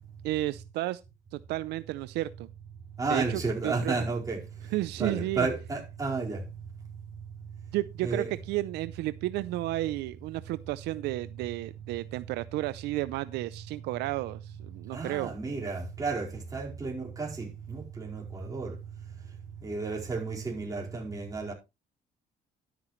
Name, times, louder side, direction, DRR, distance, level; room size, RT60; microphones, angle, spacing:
voice 1, 0.2-1.0 1.3-2.5 3.1-3.9 4.7-5.5 7.7-15.3, right 17 dB, 85° right, 0.5 m, -32 dB
voice 2, 3.0-4.7 5.0-7.6 8.0-8.3 14.9-21.5, right 4 dB, 20° right, 4.6 m, -33 dB
13.0 x 9.0 x 3.1 m
cardioid pair, 110°, 17 cm